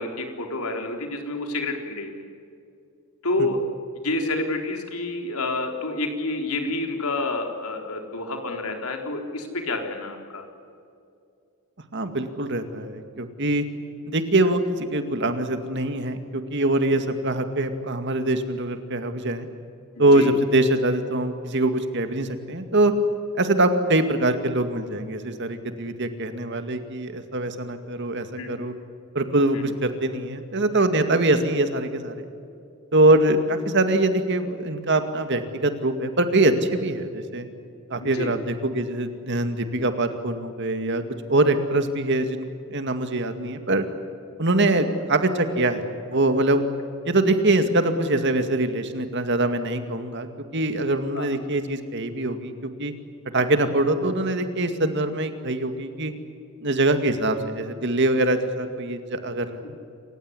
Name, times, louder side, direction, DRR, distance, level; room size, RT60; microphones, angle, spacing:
voice 1, 0.0-2.1 3.2-3.6 4.0-10.4 20.0-20.3 28.4-28.5 29.5-29.6 38.0-38.3 51.1-51.3 59.6-59.7, left 2 dB, 90° left, 3 dB, 3.9 m, -28 dB
voice 2, 11.9-13.6 14.1-19.5 20.0-22.9 23.3-28.7 29.1-32.2 32.9-37.5 37.9-41.0 41.3-43.8 44.4-46.6 47.1-50.3 50.5-52.9 53.3-56.1 56.6-59.6, right 2 dB, 55° right, 8 dB, 2.2 m, -23 dB
28.0 x 16.0 x 10.0 m, 2.5 s
head